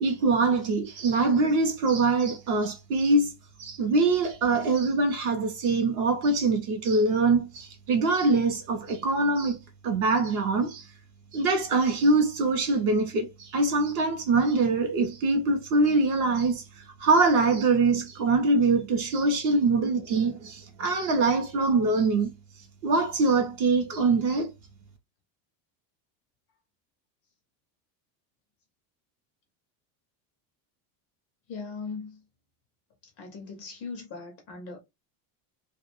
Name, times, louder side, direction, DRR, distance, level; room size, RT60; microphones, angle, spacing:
voice 1, 0.0-3.3 3.6-10.9 11.3-22.3 22.8-24.5, right 3 dB, 40° right, 0.4 m, -24 dB
voice 2, 31.5-32.2 33.2-34.8, left 4 dB, 35° left, 0.4 m, -39 dB
2.6 x 2.1 x 2.8 m
cardioid pair, 175°, 49 cm